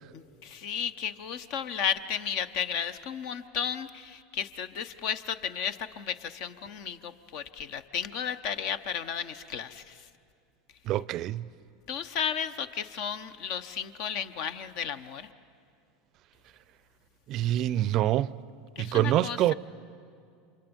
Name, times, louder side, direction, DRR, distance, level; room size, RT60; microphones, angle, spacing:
voice 1, 0.1-9.9 11.9-15.3 18.8-19.5, left 8 dB, 60° left, 0.9 m, -34 dB
voice 2, 10.9-11.4 17.3-18.3 18.8-19.5, right 13 dB, 50° right, 0.5 m, -25 dB
28.5 x 25.5 x 5.4 m
hypercardioid pair, 85°, 0 cm